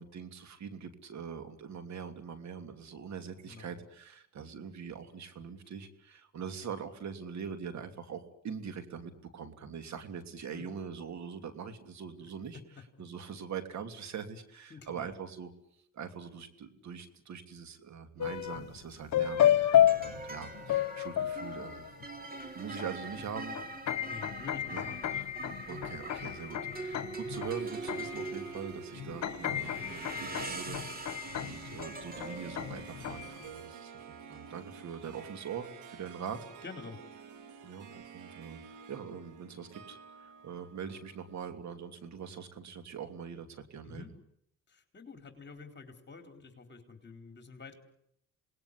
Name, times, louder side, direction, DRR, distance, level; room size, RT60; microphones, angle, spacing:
voice 1, 0.0-12.6 13.0-15.5 15.9-21.9 22.5-23.6 24.7-25.3 25.7-36.4 37.6-38.6 38.9-44.1, right 7 dB, 65° right, 9 dB, 3.1 m, -43 dB
voice 2, 3.5-3.8 10.5-10.8 14.7-15.1 24.0-25.1 36.3-37.0 43.8-44.1 44.7-47.8, left 5 dB, 35° left, 6 dB, 4.3 m, -48 dB
sound 1, 18.2-18.8 19.1-22.0 22.8-22.9 23.2-28.6 28.9-33.4, left 11 dB, 65° left, 1.5 m, -31 dB
sound 2, 18.2-18.5 19.4-36.1, right 3 dB, 30° right, 3.6 m, -44 dB
Harp, 27.2-41.7, right 7 dB, 85° right, 2.6 m, -50 dB
27.5 x 20.0 x 9.9 m, 0.72 s
cardioid pair, 90°, 30 cm